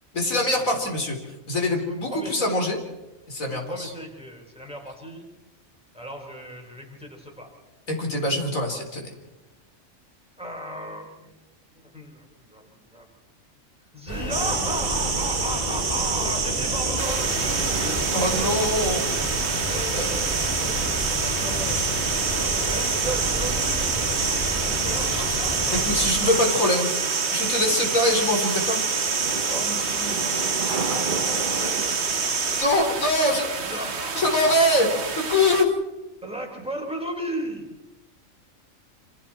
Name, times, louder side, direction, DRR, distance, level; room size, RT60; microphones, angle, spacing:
voice 1, 0.1-1.2 1.5-2.8 3.3-3.9 7.9-9.1 18.1-19.1 19.6-20.2 25.1-25.4 25.8-26.9 27.3-28.9 32.6-33.8 34.1-34.9 35.3-35.7, left 1 dB, 85° left, 2 dB, 4.3 m, -23 dB
voice 2, 1.8-2.6 3.4-5.2 5.9-7.5 10.4-11.3 11.7-13.1 13.9-18.6 19.6-21.8 22.4-23.9 24.6-26.6 29.3-30.4 30.9-31.9 33.6-35.1 36.2-37.7, right 1 dB, 5° right, 1 dB, 4.5 m, -36 dB
sound 1, 14.1-26.1, equal, 25° left, 7.6 m, -31 dB
sound 2, 14.3-32.6, right 5 dB, 40° right, 1.2 m, -27 dB
sound 3, 17.0-35.7, right 5 dB, 55° right, 1.5 m, -32 dB
27.5 x 27.0 x 4.4 m, 1.1 s
omnidirectional pair, 1.4 m